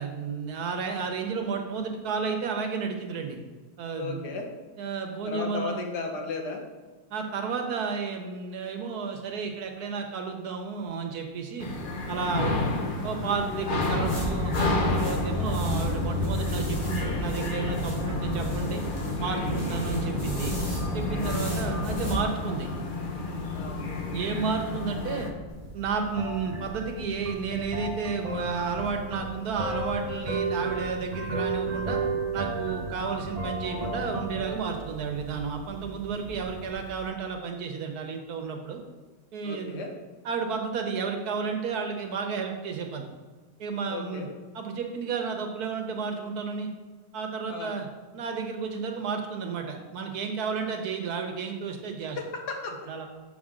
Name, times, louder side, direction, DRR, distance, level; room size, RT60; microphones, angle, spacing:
voice 1, 0.0-3.4 3.8-4.2 4.8-5.8 7.1-11.7 12.1-12.6 13.0-18.8 19.2-20.5 20.9-22.7 24.1-25.3 25.7-32.0 32.3-38.8 39.3-39.8 40.2-43.0 43.6-44.3 44.5-46.7 47.1-47.9 48.1-52.2 52.9-53.1, right 5 dB, 70° right, 4 dB, 1.4 m, -32 dB
voice 2, 4.0-4.5 5.3-6.6 12.4-12.7 21.2-21.6 23.5-23.8 39.4-39.9 43.9-44.3 47.5-47.7 52.2-52.7, left 4 dB, 85° left, 2 dB, 1.8 m, -35 dB
sound 1, 11.6-25.3, left 3 dB, 40° left, 0.8 m, -31 dB
sound 2, 13.8-22.2, equal, 25° left, 2.7 m, -31 dB
sound 3, 25.5-37.1, right 3 dB, 30° right, 0.8 m, -34 dB
7.3 x 6.9 x 3.7 m, 1.3 s
omnidirectional pair, 1.7 m